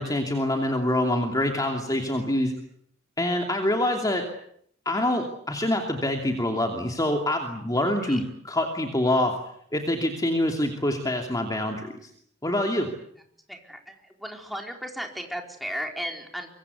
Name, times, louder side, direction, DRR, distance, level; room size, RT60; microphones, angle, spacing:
voice 1, 0.0-2.5 3.2-4.2 4.8-9.3 9.7-12.1 12.4-12.9, left 1 dB, 20° left, 3 dB, 2.8 m, -25 dB
voice 2, 13.5-13.9 14.2-16.5, equal, ahead, 2 dB, 4.5 m, -35 dB
25.0 x 24.5 x 8.2 m, 0.69 s
head